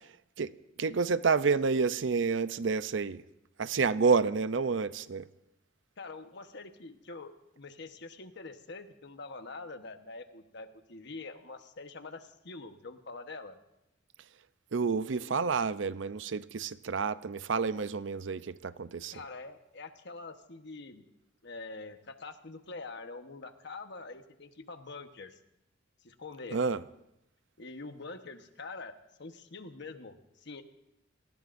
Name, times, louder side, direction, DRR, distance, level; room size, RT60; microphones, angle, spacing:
voice 1, 0.8-3.2 3.6-5.3 14.7-19.1 26.5-26.8, right 5 dB, 75° right, 0.6 m, -29 dB
voice 2, 6.0-13.6 19.1-21.1 21.4-25.4 26.0-26.6 27.6-28.9 29.2-30.6, left 3 dB, 65° left, 1.2 m, -45 dB
29.0 x 19.0 x 2.6 m
head